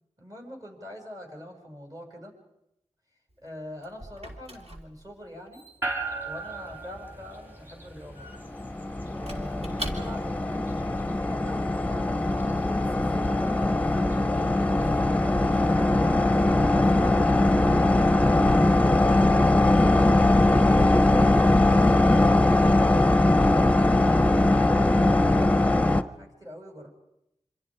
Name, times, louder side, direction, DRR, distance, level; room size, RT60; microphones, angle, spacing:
voice 1, 0.2-2.3 3.4-5.6 6.3-8.3 9.0-14.1 14.5-17.3 18.6-24.2 24.6-26.9, left 1 dB, 30° right, 2 dB, 6.9 m, -43 dB
Squeak / Wood, 3.3-10.5, right 1 dB, 60° right, 3.3 m, -42 dB
sound 1, 5.8-20.1, right 2 dB, 15° right, 4.3 m, -42 dB
sound 2, 8.5-26.0, left 2 dB, 10° left, 0.8 m, -21 dB
27.0 x 25.5 x 5.1 m, 0.84 s
wide cardioid pair, 55°, 12 cm